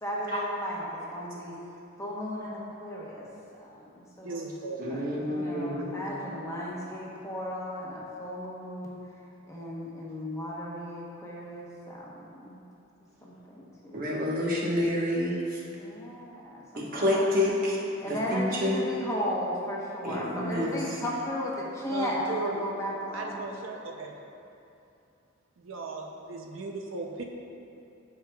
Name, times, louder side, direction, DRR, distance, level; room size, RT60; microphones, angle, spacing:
voice 1, 0.0-1.5 2.0-3.3 3.6-4.4 4.9-9.2 9.5-12.6 13.2-14.0 15.8-16.9 17.1-17.2 18.0-23.6, equal, 15° left, -5 dB, 1.0 m, -35 dB
voice 2, 4.2-4.8 21.9-22.7 23.1-24.1 25.6-27.2, right 3 dB, 75° right, 1 dB, 0.5 m, -36 dB
voice 3, 4.8-6.1 13.9-15.6 16.7-18.8 20.0-21.0, left 1 dB, 45° right, -5 dB, 1.2 m, -28 dB
13.0 x 4.7 x 2.3 m, 2.7 s
head